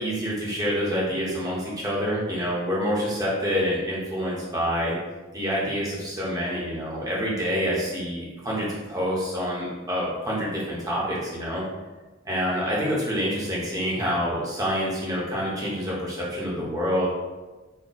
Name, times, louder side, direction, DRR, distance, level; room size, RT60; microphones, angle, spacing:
voice 1, 0.0-4.9 5.3-11.6 12.2-17.1, equal, 15° right, -6 dB, 1.0 m, -27 dB
4.3 x 2.2 x 4.1 m, 1.2 s
head